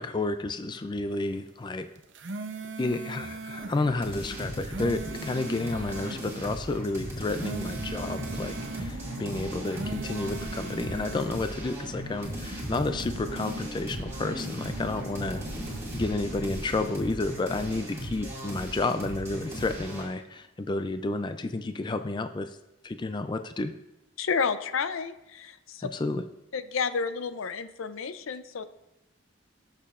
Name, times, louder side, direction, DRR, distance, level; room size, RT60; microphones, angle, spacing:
voice 1, 0.0-1.9 2.8-15.4 15.9-22.6 22.8-23.7 25.8-26.2, left 2 dB, 20° left, 9 dB, 0.3 m, -31 dB
sound 1, 1.9-3.8 4.4-6.2 7.1-8.9 9.5-11.3, right 3 dB, 60° right, 0.7 m, -39 dB
sound 2, 3.6-20.1, equal, 15° right, 2.1 m, -38 dB
Car / Engine, 7.9-17.0, right 1 dB, 80° right, 1.2 m, -41 dB
voice 2, 24.2-25.9 26.5-28.6, left 5 dB, 75° left, 12 dB, 0.5 m, -31 dB
18.0 x 6.6 x 2.4 m, 0.93 s
head